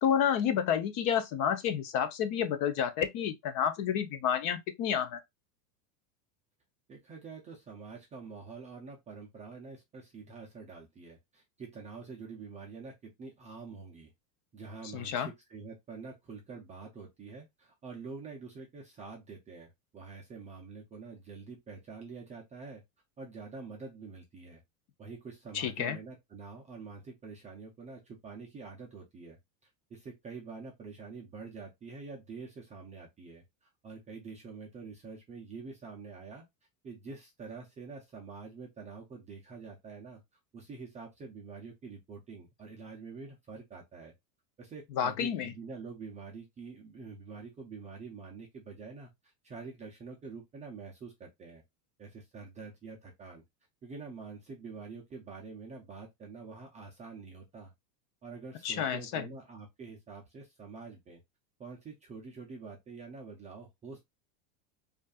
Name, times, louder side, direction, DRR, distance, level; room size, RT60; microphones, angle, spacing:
voice 1, 0.0-5.2 14.9-15.3 25.5-26.0 45.0-45.5 58.6-59.3, left 8 dB, 40° left, 0.6 m, -30 dB
voice 2, 6.9-14.1 14.5-22.8 23.2-24.6 25.0-36.5 36.8-40.2 40.5-44.1 44.6-51.6 52.0-53.4 53.8-57.7 58.2-61.2 61.6-64.0, right 4 dB, 15° right, 0.4 m, -46 dB
5.1 x 2.5 x 2.3 m
supercardioid pair, 140°, 50 cm